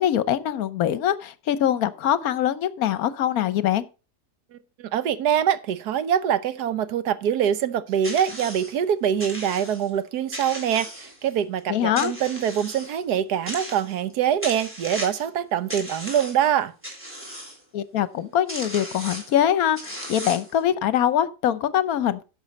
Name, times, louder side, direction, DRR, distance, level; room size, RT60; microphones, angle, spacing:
voice 1, 0.0-3.8 11.7-12.1 17.7-22.2, left 10 dB, 70° left, 1.2 m, -23 dB
voice 2, 4.5-16.7, right 9 dB, 75° right, 1.4 m, -24 dB
sound 1, 8.0-8.7 9.2-9.9 10.3-11.4 12.0-12.9 13.5-14.1 14.4-15.3 15.7-16.5 16.8-17.6 18.2-18.3 18.5-19.3 19.8-20.6, equal, 5° right, 3.7 m, -36 dB
11.5 x 7.3 x 4.1 m
omnidirectional pair, 1.7 m